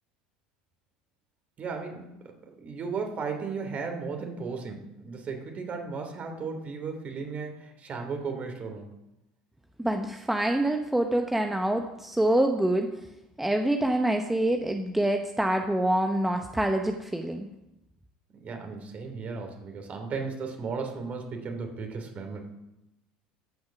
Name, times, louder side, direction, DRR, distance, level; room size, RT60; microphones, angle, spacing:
voice 1, 1.6-8.9 18.3-22.4, right 4 dB, 40° right, 4 dB, 2.7 m, -35 dB
voice 2, 9.8-12.9 13.4-17.5, right 1 dB, 5° right, 4 dB, 0.9 m, -26 dB
14.0 x 6.5 x 5.9 m, 0.93 s
hypercardioid pair, 80°, 4 cm